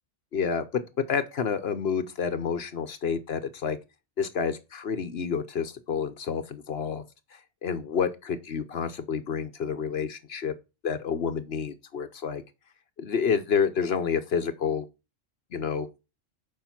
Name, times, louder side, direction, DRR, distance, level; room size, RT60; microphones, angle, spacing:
voice 1, 0.3-3.8 4.2-7.0 7.6-10.5 10.8-12.4 13.0-14.9 15.5-15.9, left 6 dB, 55° left, 1.0 m, -29 dB
7.1 x 5.2 x 5.8 m
omnidirectional pair, 1.3 m